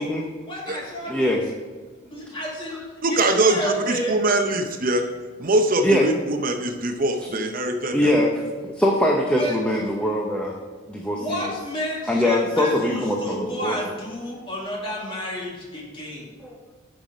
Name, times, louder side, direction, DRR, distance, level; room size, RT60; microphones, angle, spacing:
voice 1, 0.4-1.4 2.0-4.2 9.3-9.6 11.1-16.3, equal, 25° left, -3 dB, 2.0 m, -31 dB
voice 2, 1.1-1.4 5.8-6.1 7.3-7.4 7.9-10.5 10.9-11.4 12.1-13.8 16.4-16.6, left 1 dB, 5° left, -1 dB, 0.8 m, -22 dB
voice 3, 3.0-5.0 5.4-8.1, right 2 dB, 40° right, 5 dB, 0.7 m, -22 dB
9.2 x 6.0 x 5.0 m, 1.5 s
head